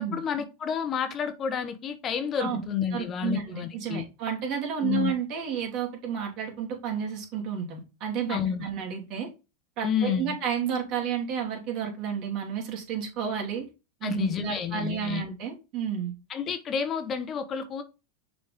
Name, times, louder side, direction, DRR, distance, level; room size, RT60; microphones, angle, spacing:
voice 1, 0.0-4.0 4.8-5.1 8.3-8.6 9.8-10.3 14.0-15.2 16.3-17.8, left 7 dB, 30° left, 1.0 m, -30 dB
voice 2, 2.9-9.3 9.8-13.7 14.0-16.1, right 8 dB, 50° right, 2.9 m, -31 dB
6.5 x 4.2 x 3.6 m
hypercardioid pair, 120°, 0 cm